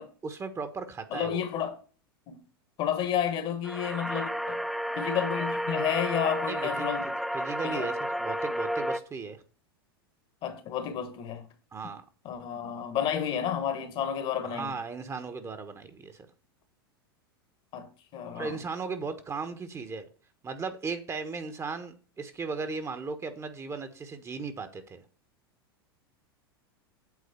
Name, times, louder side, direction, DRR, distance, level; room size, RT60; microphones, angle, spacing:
voice 1, 0.2-1.4 6.4-9.4 11.7-12.0 14.5-16.3 18.3-20.1 20.4-25.0, right 4 dB, 20° right, 1.1 m, -36 dB
voice 2, 1.1-1.8 2.3-2.4 2.8-4.6 5.0-7.1 7.6-7.9 10.4-11.5 12.2-14.7 17.7-18.6, left 9 dB, 45° left, 1.4 m, -31 dB
sound 1, 3.6-9.0, equal, ahead, 0.4 m, -32 dB
8.3 x 3.9 x 6.8 m
hypercardioid pair, 95°, 13 cm